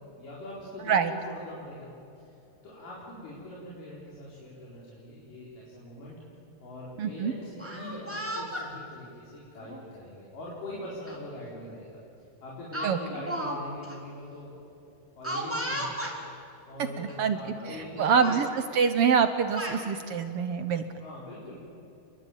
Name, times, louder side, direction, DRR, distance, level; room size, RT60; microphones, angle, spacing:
voice 1, 0.0-2.3 2.6-6.1 6.6-12.0 12.4-14.5 15.1-15.9 16.7-18.1 21.0-21.6, left 1 dB, 75° left, -6 dB, 5.9 m, -42 dB
voice 2, 7.0-7.3 12.8-13.0 17.0-17.4 17.7-20.8, right 6 dB, 75° right, 9 dB, 1.3 m, -25 dB
Speech, 7.5-8.7 9.6-9.8 11.1-11.2 11.5-11.8 12.7-13.6 13.8-13.9 15.2-16.2 17.1-17.2 17.5-17.9 18.2-18.4 19.2-19.8, right 1 dB, 5° right, 3.5 m, -34 dB
28.5 x 21.5 x 9.1 m, 2.8 s
omnidirectional pair, 3.8 m